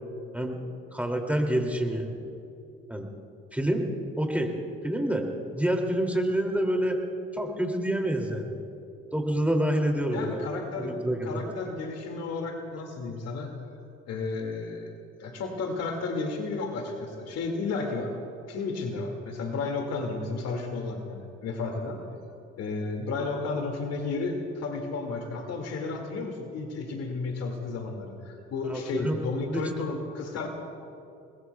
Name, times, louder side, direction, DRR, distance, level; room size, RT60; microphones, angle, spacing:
voice 1, 0.9-2.1 2.9-3.1 3.5-3.8 4.2-4.5 4.8-5.2 5.5-7.0 7.3-8.6 9.1-10.4 10.8-11.4 28.7-29.2 29.5-29.6, right 1 dB, 5° right, 2 dB, 2.6 m, -27 dB
voice 2, 10.1-13.6 14.1-14.9 15.2-18.2 18.5-22.0 22.6-30.5, left 3 dB, 60° left, 3 dB, 2.3 m, -33 dB
28.5 x 20.5 x 2.3 m, 2.8 s
hypercardioid pair, 60°, 29 cm